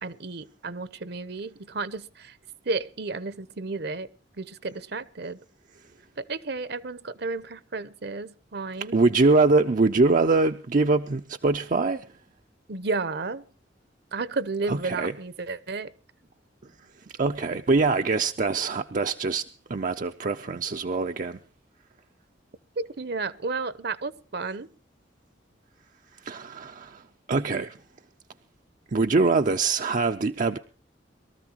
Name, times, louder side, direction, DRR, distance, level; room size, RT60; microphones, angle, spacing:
voice 1, 0.0-2.4 2.6-4.1 4.4-5.4 6.2-9.0 12.7-13.4 14.1-15.9 22.8-24.7, right 3 dB, 60° right, 0.9 m, -32 dB
voice 2, 8.9-12.1 14.7-15.1 17.2-21.4 26.2-27.0 27.3-27.8 28.9-30.6, right 3 dB, 45° right, 0.6 m, -23 dB
23.0 x 14.0 x 3.0 m
head